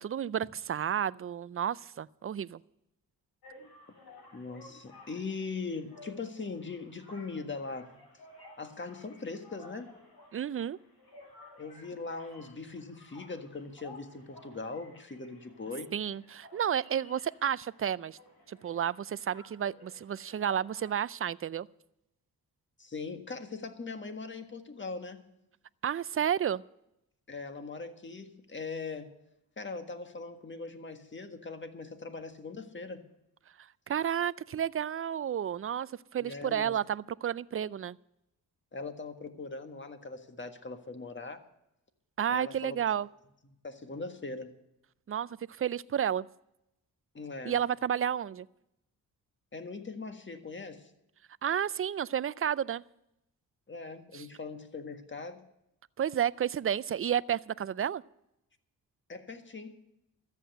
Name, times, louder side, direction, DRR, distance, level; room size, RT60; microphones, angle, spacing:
voice 1, 0.0-2.6 10.3-10.8 15.9-18.2 18.5-21.7 25.8-26.6 33.9-38.0 42.2-43.1 45.1-46.3 47.4-48.5 51.4-52.8 54.1-54.3 56.0-58.0, right 9 dB, 35° right, 19 dB, 0.5 m, -31 dB
sound 1, 3.4-21.0, left 2 dB, 75° left, 7.1 m, -55 dB
voice 2, 4.3-8.0 8.6-10.0 11.6-15.9 22.8-25.2 27.3-29.1 29.6-33.1 36.2-36.8 38.7-41.4 42.3-42.8 43.6-44.5 47.1-47.6 49.5-50.9 53.7-55.4 59.1-59.8, left 4 dB, 30° left, 7 dB, 1.7 m, -40 dB
13.5 x 8.3 x 7.9 m, 0.84 s
cardioid pair, 65°, 38 cm